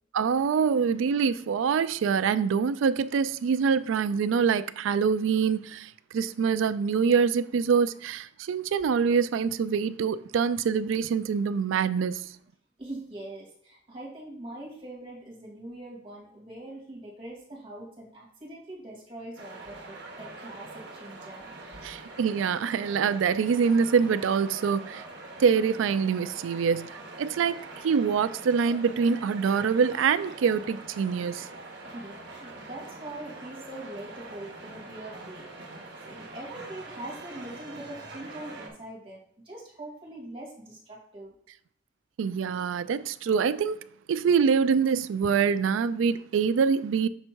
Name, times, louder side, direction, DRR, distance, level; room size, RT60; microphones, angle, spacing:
voice 1, 0.1-12.3 21.8-25.0 25.4-31.5 42.2-43.8 44.1-47.1, right 6 dB, 75° right, 0.3 m, -25 dB
voice 2, 12.8-21.8 31.9-41.3, right 1 dB, 30° right, 2.0 m, -43 dB
sound 1, 19.4-38.7, right 2 dB, 55° right, 1.1 m, -44 dB
6.6 x 3.5 x 4.5 m
head